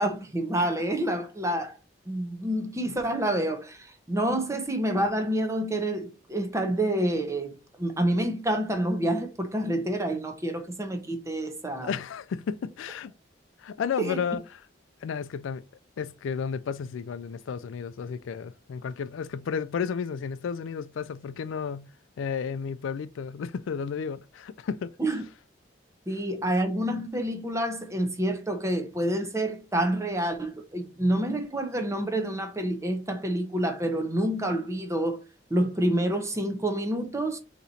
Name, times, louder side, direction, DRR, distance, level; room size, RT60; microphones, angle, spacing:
voice 1, 0.0-1.8 2.1-11.9 14.0-14.2 25.0-25.2 26.1-35.2 35.5-37.4, right 1 dB, 15° right, 0.7 m, -28 dB
voice 2, 11.8-13.1 13.6-14.4 15.0-15.6 16.0-21.9 22.2-24.9, left 6 dB, 85° left, 0.3 m, -32 dB
4.1 x 3.0 x 4.0 m
head